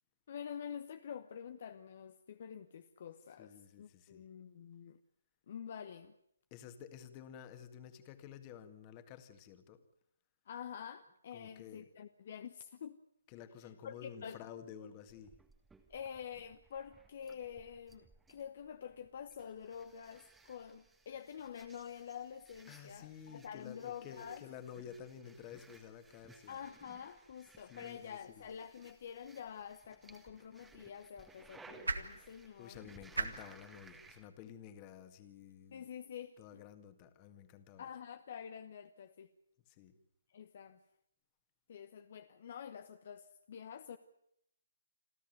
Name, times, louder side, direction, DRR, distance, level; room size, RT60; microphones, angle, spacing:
voice 1, 0.3-5.0 5.5-6.1 10.5-13.0 13.8-14.4 15.9-24.4 26.5-32.8 35.7-36.6 37.8-39.3 40.3-40.8 41.7-44.0, left 8 dB, 45° left, 10 dB, 1.0 m, -47 dB
voice 2, 3.4-4.3 6.5-9.8 11.3-11.9 13.3-15.3 22.7-26.7 27.6-28.5 32.6-35.9 36.4-37.9 39.7-39.9, left 8 dB, 25° left, 9 dB, 1.9 m, -52 dB
sound 1, 15.1-34.3, right 3 dB, 5° right, 1.5 m, -62 dB
sound 2, 30.0-36.3, right 3 dB, 75° right, 2.1 m, -45 dB
27.5 x 14.0 x 9.2 m, 0.78 s
figure-of-eight pair, 140°, 0 cm